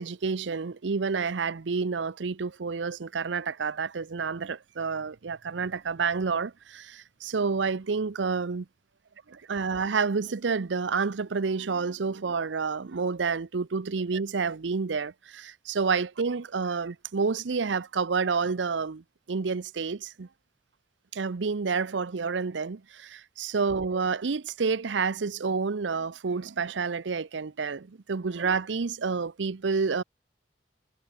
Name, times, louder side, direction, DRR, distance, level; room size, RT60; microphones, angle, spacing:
voice 1, 0.0-8.7 9.3-20.3 21.1-30.0, right 5 dB, 80° right, 0.7 m, -29 dB
head